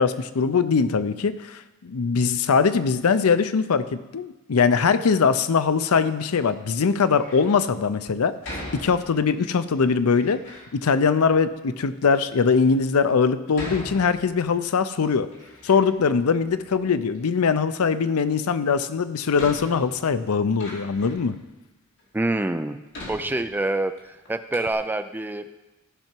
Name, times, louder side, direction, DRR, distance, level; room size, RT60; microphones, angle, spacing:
voice 1, 0.0-8.4 8.7-10.4 10.7-15.3 15.6-21.4, left 5 dB, 80° left, 13 dB, 0.5 m, -21 dB
Door, 7.1-7.6 8.4-9.4 10.1-10.7 11.5-11.6 12.3-12.4 13.5-14.7 15.0-16.1 16.4-17.2 18.6-18.7 19.4-21.3 22.0-22.1 22.9-24.0 24.3-24.4 24.5-24.7, left 1 dB, 55° left, 2.9 m, -40 dB
voice 2, 22.1-22.8 23.1-25.5, right 2 dB, 10° right, 10 dB, 0.3 m, -26 dB
14.5 x 5.8 x 4.5 m, 1.0 s
head